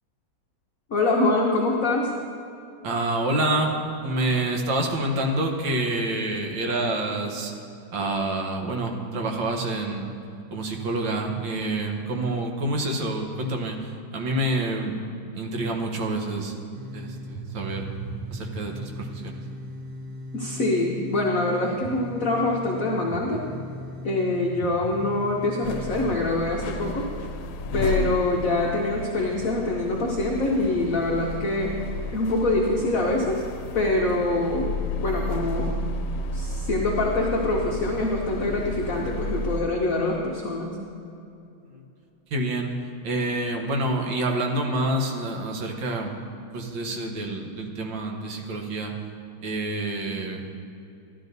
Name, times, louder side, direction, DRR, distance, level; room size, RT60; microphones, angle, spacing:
voice 1, 0.9-2.1 20.3-23.4 24.0-27.0 27.7-31.7 32.1-33.4 33.7-35.8 36.3-40.8, left 2 dB, 55° left, -2 dB, 1.0 m, -25 dB
voice 2, 2.8-7.5 7.9-10.1 10.5-15.0 15.4-16.6 16.9-17.9 18.3-19.4 41.7-41.8 42.3-42.7 43.0-46.2 46.5-48.9 49.4-50.4, right 2 dB, 65° right, 2 dB, 1.7 m, -27 dB
sound 1, 16.7-26.2, equal, 80° right, 0.7 m, -37 dB
sound 2, 25.6-39.6, left 2 dB, 85° left, 1.6 m, -32 dB
13.5 x 11.5 x 2.7 m, 2.6 s
omnidirectional pair, 2.4 m